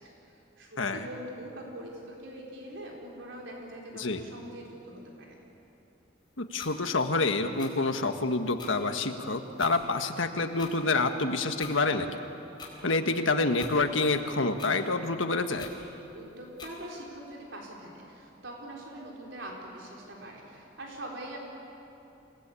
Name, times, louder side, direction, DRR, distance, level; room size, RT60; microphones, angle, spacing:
voice 1, 0.0-5.4 16.1-21.4, right 1 dB, 70° right, -2 dB, 4.0 m, -43 dB
voice 2, 6.4-12.1 12.8-15.7, left 3 dB, 80° left, 6 dB, 1.6 m, -27 dB
sound 1, 6.6-6.7 7.6-7.7 8.6-8.7 9.6-9.7 10.6-10.7 11.6-11.7 12.6-12.7 13.6-13.8 14.6-14.7 15.6-15.7 16.6-16.7, left 6 dB, 25° left, 4.3 m, -43 dB
28.0 x 18.5 x 8.6 m, 2.9 s
head